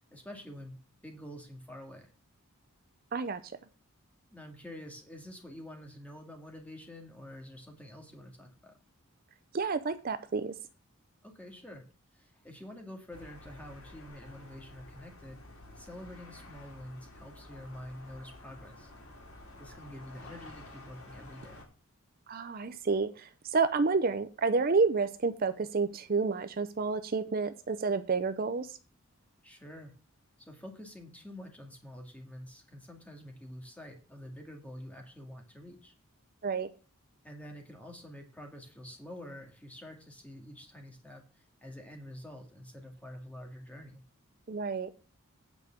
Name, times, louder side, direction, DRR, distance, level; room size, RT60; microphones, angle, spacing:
voice 1, 0.1-2.1 4.3-8.8 11.2-11.9 12.1-15.4 15.8-18.9 19.6-21.6 29.4-29.9 30.4-35.9 37.2-44.0, left 1 dB, 5° left, 3 dB, 2.1 m, -47 dB
voice 2, 9.5-10.5 22.3-28.8 36.4-36.7 44.5-44.9, right 4 dB, 40° right, 11 dB, 0.5 m, -29 dB
sound 1, 13.1-21.6, left 1 dB, 85° left, 3.4 m, -51 dB
9.2 x 5.1 x 7.1 m, 0.36 s
head